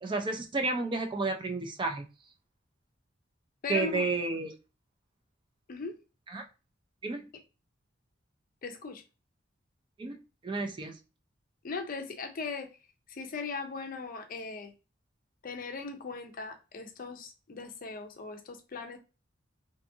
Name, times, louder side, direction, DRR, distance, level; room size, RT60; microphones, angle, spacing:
voice 1, 0.0-2.1 3.7-4.5 6.3-6.4 7.0-7.2 10.0-10.2 10.4-11.0, right 3 dB, 25° right, 0.3 m, -31 dB
voice 2, 3.6-4.0 5.7-6.0 8.6-9.0 11.6-12.7 13.1-14.7 15.4-19.0, left 4 dB, 45° left, 0.5 m, -38 dB
2.6 x 2.4 x 2.6 m
head